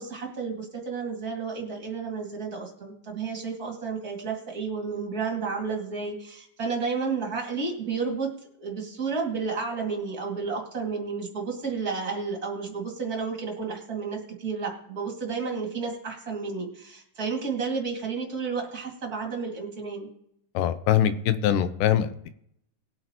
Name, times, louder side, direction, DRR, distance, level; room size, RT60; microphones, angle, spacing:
voice 1, 0.0-8.3 8.6-20.1, right 5 dB, 30° right, 1 dB, 2.1 m, -31 dB
voice 2, 20.5-22.3, left 10 dB, 85° left, 12 dB, 2.2 m, -23 dB
20.0 x 8.5 x 2.9 m, 0.70 s
omnidirectional pair, 3.8 m